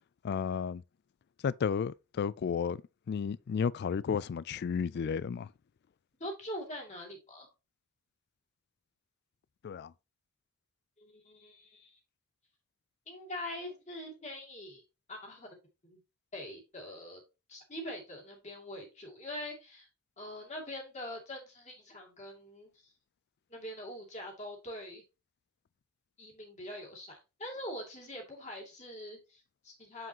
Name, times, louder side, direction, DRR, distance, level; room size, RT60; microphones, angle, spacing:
voice 1, 0.2-0.8 1.4-2.8 3.1-5.5 9.6-9.9, left 6 dB, 50° left, 0.3 m, -32 dB
voice 2, 6.2-7.5 11.0-12.0 13.1-14.8 15.1-15.5 15.8-16.0 16.3-17.2 17.5-19.9 20.2-22.9 23.5-25.0 26.2-30.1, left 1 dB, 30° left, 2.4 m, -43 dB
7.2 x 6.0 x 2.9 m
head